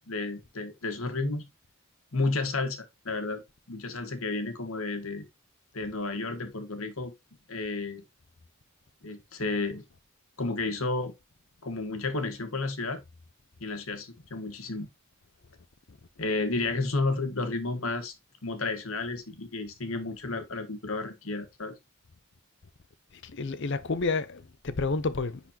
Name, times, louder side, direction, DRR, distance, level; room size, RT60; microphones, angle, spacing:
voice 1, 0.1-1.5 2.1-3.4 3.7-5.3 5.7-7.1 7.5-8.0 9.0-9.8 10.4-11.1 11.6-13.0 13.6-14.9 16.2-18.1 18.4-21.8, left 3 dB, 75° left, 1.6 m, -32 dB
voice 2, 23.2-25.4, left 3 dB, 55° left, 0.6 m, -30 dB
10.0 x 4.2 x 2.8 m
head